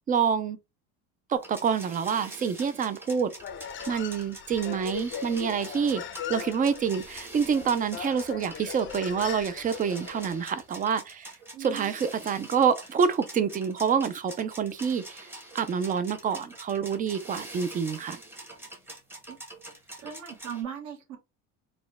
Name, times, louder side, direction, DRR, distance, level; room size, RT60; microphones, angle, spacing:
voice 1, 0.1-0.6 1.3-3.3 3.9-6.0 6.3-11.3 11.6-15.3 15.5-18.2, right 6 dB, 25° right, 0.4 m, -27 dB
sound 1, 1.4-20.6, right 1 dB, 5° right, 0.9 m, -45 dB
Human voice, 3.4-10.5, left 8 dB, 35° left, 0.5 m, -39 dB
voice 2, 11.5-11.9 19.3-19.4 20.0-21.2, right 8 dB, 55° right, 1.4 m, -38 dB
4.2 x 2.2 x 3.4 m
cardioid pair, 130°, 36 cm